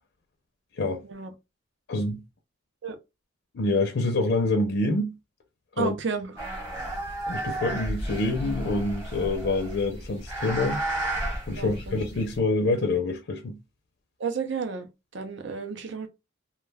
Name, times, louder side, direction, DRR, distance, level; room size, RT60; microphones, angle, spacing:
voice 1, 1.9-2.2 3.5-5.2 5.8-6.0 7.3-10.8 11.5-13.6, left 2 dB, 60° left, 0.5 m, -26 dB
voice 2, 5.8-6.4 11.5-12.0 14.2-16.1, right 5 dB, 65° right, 0.6 m, -32 dB
sound 1, 6.4-12.4, right 1 dB, 15° right, 1.0 m, -33 dB
2.3 x 2.2 x 3.3 m
head